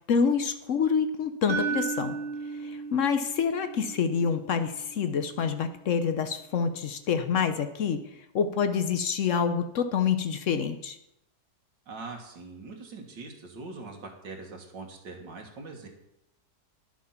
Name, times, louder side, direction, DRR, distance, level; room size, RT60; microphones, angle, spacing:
voice 1, 0.1-2.1 2.5-8.1 8.3-11.0, left 6 dB, 60° left, 9 dB, 0.8 m, -27 dB
sound 1, 1.5-5.5, right 4 dB, 40° right, 2.0 m, -35 dB
voice 2, 11.9-15.9, right 3 dB, 85° right, 1 dB, 2.4 m, -42 dB
10.5 x 7.2 x 5.8 m, 0.82 s
omnidirectional pair, 1.9 m